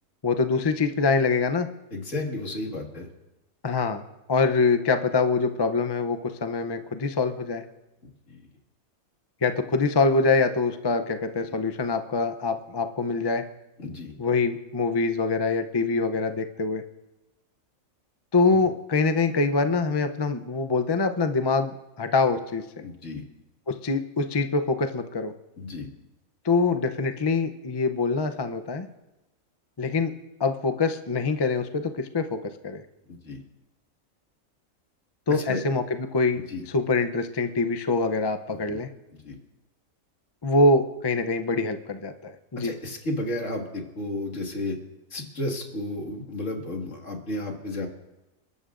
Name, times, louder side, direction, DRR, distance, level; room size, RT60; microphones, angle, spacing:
voice 1, 0.2-1.7 3.6-4.0 4.3-7.6 9.4-13.4 14.2-16.8 18.3-22.6 23.7-25.3 26.4-28.9 29.8-30.1 30.4-32.8 35.3-36.4 36.7-38.9 40.4-42.7, left 3 dB, 30° left, 7 dB, 0.4 m, -24 dB
voice 2, 1.9-3.1 8.3-8.4 13.8-14.1 18.5-18.6 22.8-23.2 25.6-25.9 33.1-33.4 35.3-35.6 36.5-36.6 38.7-38.8 39.2-39.4 42.6-44.8 45.1-47.9, left 1 dB, 60° left, 1 dB, 2.3 m, -32 dB
29.0 x 12.5 x 2.6 m, 0.99 s
omnidirectional pair, 1.4 m